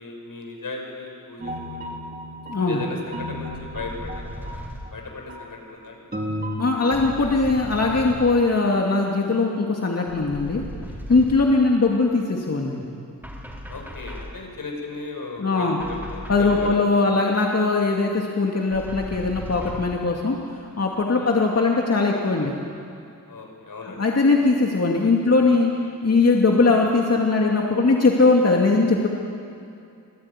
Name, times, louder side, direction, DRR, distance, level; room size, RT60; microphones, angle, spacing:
voice 1, 0.0-1.9 2.6-4.6 4.9-6.0 13.7-17.1 21.1-21.4 23.3-24.3, left 3 dB, 85° left, 1 dB, 5.9 m, -36 dB
sound 1, 1.4-4.9 5.3-5.5 6.1-6.6, equal, 30° right, 4.4 m, -34 dB
voice 2, 2.5-2.8 6.6-10.6 11.1-12.9 15.4-15.8 16.3-22.5 24.0-25.7 26.0-29.1, left 3 dB, 50° left, -1 dB, 2.4 m, -20 dB
sound 2, 3.5-5.0 6.9-8.4 10.1-11.6 13.2-14.5 15.8-16.8 18.7-20.0, equal, 5° right, 4.1 m, -37 dB
27.5 x 19.0 x 9.9 m, 2.5 s
wide cardioid pair, 115°, 33 cm